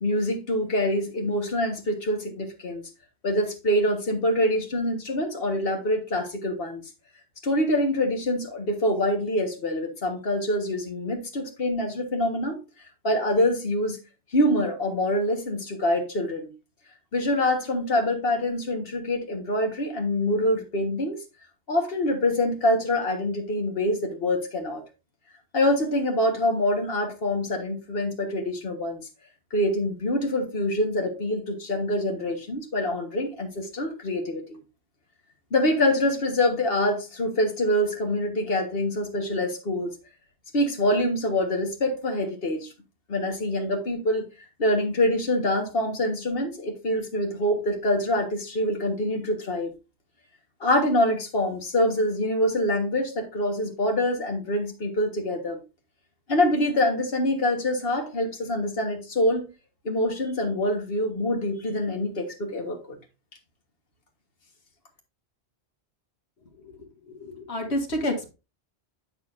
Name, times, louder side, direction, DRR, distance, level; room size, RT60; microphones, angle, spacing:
voice 1, 0.0-2.8 3.2-6.8 7.4-12.6 13.0-14.0 14.3-16.5 17.1-21.2 21.7-24.8 25.5-29.0 29.5-34.6 35.5-39.9 40.5-42.7 43.1-44.3 44.6-49.7 50.6-55.6 56.3-59.5 59.9-63.0, left 1 dB, 60° left, 1.7 m, -25 dB
voice 2, 66.6-68.3, left 1 dB, 80° left, 1.9 m, -30 dB
8.1 x 6.4 x 2.6 m
omnidirectional pair, 1.1 m